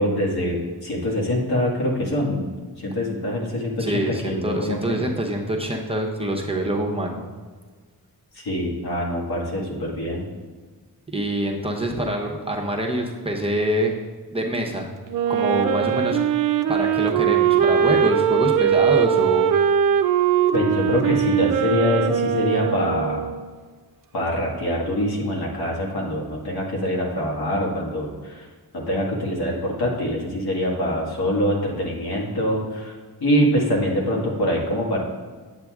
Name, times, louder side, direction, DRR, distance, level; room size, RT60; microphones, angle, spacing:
voice 1, 0.0-2.5 2.8-5.0 8.4-10.3 20.5-23.3 24.1-28.5 28.7-32.9 33.2-35.0, equal, 70° left, -3 dB, 1.7 m, -24 dB
voice 2, 3.8-7.2 11.1-14.0 14.3-14.9 15.3-16.3 16.7-19.5, right 1 dB, 15° right, -1 dB, 0.8 m, -25 dB
Wind instrument woodwind instrument, 15.1-23.5, right 9 dB, 55° right, 0.5 m, -21 dB
8.0 x 7.4 x 2.4 m, 1.5 s
cardioid pair, 75°, 39 cm